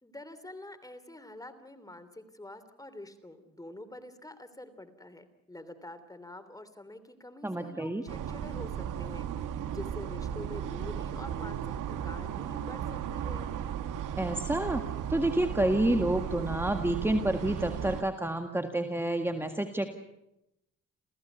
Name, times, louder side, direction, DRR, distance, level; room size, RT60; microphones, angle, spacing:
voice 1, 0.0-13.5, left 1 dB, 10° left, 11 dB, 3.0 m, -46 dB
voice 2, 7.4-8.0 14.2-14.8 15.1-19.9, right 1 dB, 10° right, 6 dB, 1.8 m, -29 dB
sound 1, 8.1-18.0, right 9 dB, 80° right, 1.4 m, -35 dB
29.0 x 15.5 x 8.1 m, 0.86 s
cardioid pair, 85°, 31 cm